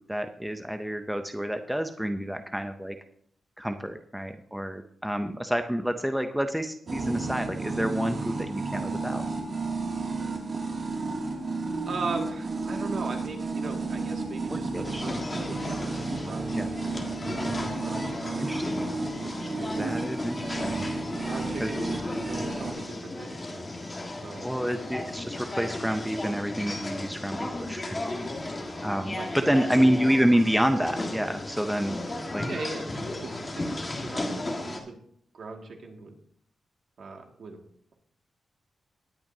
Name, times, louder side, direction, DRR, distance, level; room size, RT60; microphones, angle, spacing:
voice 1, 0.0-3.0 3.6-9.2 14.5-15.0 16.5-16.7 18.4-18.8 19.8-20.9 21.6-21.8 24.4-28.0 28.8-29.2 29.5-32.0 32.3-32.5, equal, ahead, 6 dB, 0.6 m, -28 dB
sound 1, 6.9-22.7, right 3 dB, 40° right, 2.4 m, -32 dB
voice 2, 11.9-16.8 17.2-18.7 19.4-19.8 20.4-20.5 21.2-23.8 24.2-24.5 29.1-29.9 32.5-32.9 33.2-33.7 34.0-35.0 35.3-36.1 37.0-37.6, right 3 dB, 55° right, 2 dB, 2.0 m, -39 dB
sound 2, 14.8-34.8, left 2 dB, 20° left, 1.6 m, -35 dB
19.5 x 9.0 x 2.7 m, 0.65 s
wide cardioid pair, 160°, 0 cm